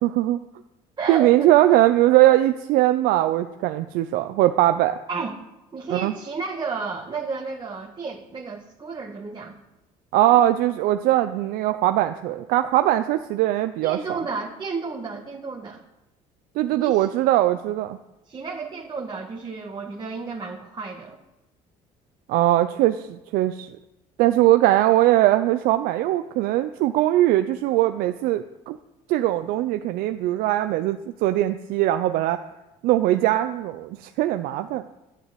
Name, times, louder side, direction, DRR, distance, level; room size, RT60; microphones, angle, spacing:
voice 1, 0.0-0.4 1.1-5.0 5.9-6.1 10.1-14.2 16.6-18.0 22.3-23.8 24.2-28.8 29.1-32.4 32.8-34.9, right 14 dB, 75° right, 9 dB, 0.7 m, -20 dB
voice 2, 1.0-1.5 5.1-5.4 5.7-9.6 13.8-15.8 16.7-17.1 18.3-21.2, right 4 dB, 30° right, 0 dB, 1.9 m, -32 dB
11.0 x 10.0 x 8.3 m, 0.97 s
supercardioid pair, 80°, 15 cm